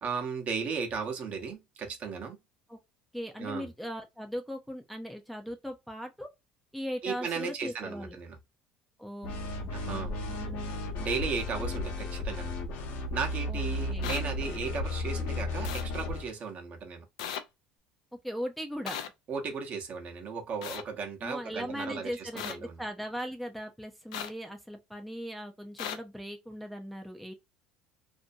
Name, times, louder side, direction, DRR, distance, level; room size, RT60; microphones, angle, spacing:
voice 1, 0.0-2.4 3.4-3.7 7.0-8.4 9.7-10.2 11.0-12.5 13.1-17.0 19.3-22.8, right 5 dB, 50° right, 0.9 m, -35 dB
voice 2, 3.1-6.3 6.7-8.2 9.0-10.0 10.3-10.7 13.5-13.6 13.9-14.1 18.2-19.0 21.2-27.3, equal, ahead, 0.5 m, -39 dB
sound 1, 9.2-16.3, left 2 dB, 65° left, 0.9 m, -34 dB
sound 2, 14.0-14.2 15.6-15.8 17.2-17.4 18.9-19.1 20.6-20.8 22.4-22.5 24.1-24.3 25.8-26.0, left 9 dB, 90° left, 0.4 m, -36 dB
2.6 x 2.1 x 2.5 m
supercardioid pair, 90°, 3 cm